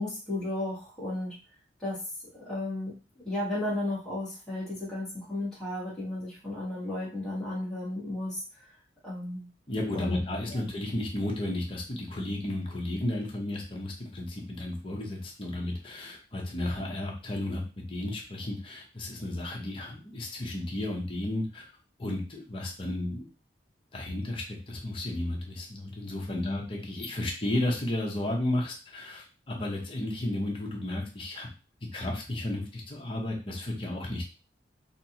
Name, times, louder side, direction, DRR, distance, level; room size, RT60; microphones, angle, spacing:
voice 1, 0.0-1.4 1.8-2.0 2.3-2.9 3.2-8.7 9.0-9.5 9.9-10.7 26.3-26.6, left 1 dB, 5° left, -9 dB, 1.3 m, -34 dB
voice 2, 9.7-21.7 22.0-23.3 23.9-31.5 31.8-34.2, left 1 dB, 30° left, -2 dB, 0.8 m, -33 dB
4.1 x 2.0 x 2.8 m, 0.34 s
head